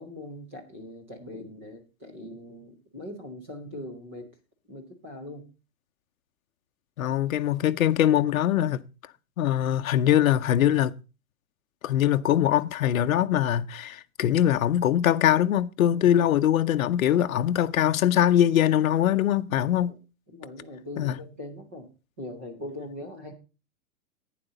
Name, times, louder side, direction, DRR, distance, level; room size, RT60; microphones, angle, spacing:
voice 1, 0.0-4.3 4.7-5.5 15.9-16.3 17.1-17.3 19.5-20.0 20.3-21.9 22.2-23.3, left 1 dB, 10° right, 0.5 m, -41 dB
voice 2, 7.0-8.8 9.4-10.9 11.8-19.9 21.0-21.2, left 11 dB, 70° left, 0.7 m, -22 dB
11.0 x 9.1 x 3.8 m
hypercardioid pair, 180°, 43 cm